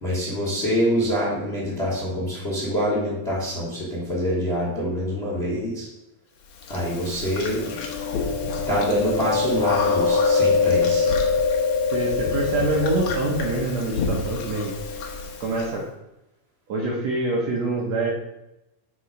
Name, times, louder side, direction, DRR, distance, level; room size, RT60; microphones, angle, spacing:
voice 1, 0.0-5.9 6.7-7.7 8.7-11.1, equal, 35° left, -4 dB, 1.1 m, -25 dB
Chewing mastication, 6.7-15.6, left 4 dB, 65° left, 2.1 m, -24 dB
voice 2, 11.9-14.7 15.4-15.8 16.7-18.1, right 2 dB, 65° right, -2 dB, 1.9 m, -25 dB
7.7 x 3.9 x 5.2 m, 0.90 s
omnidirectional pair, 4.0 m